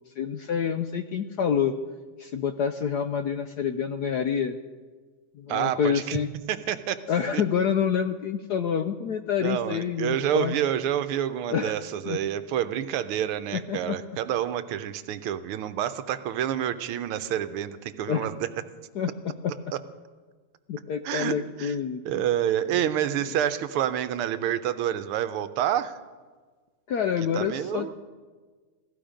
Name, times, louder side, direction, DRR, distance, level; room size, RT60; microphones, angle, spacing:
voice 1, 0.2-1.7 2.2-4.6 5.3-6.3 7.1-10.5 11.5-11.8 12.1-12.2 13.5-14.0 18.1-18.2 18.9-19.1 19.4-19.5 20.7-22.2 26.9-28.0, left 7 dB, 70° left, 8 dB, 0.9 m, -27 dB
voice 2, 5.5-6.2 6.5-7.0 7.3-7.4 9.4-18.5 21.0-21.8 22.0-26.0 27.3-27.9, right 10 dB, 90° right, 11 dB, 1.6 m, -28 dB
17.0 x 14.5 x 5.1 m, 1.4 s
omnidirectional pair, 2.4 m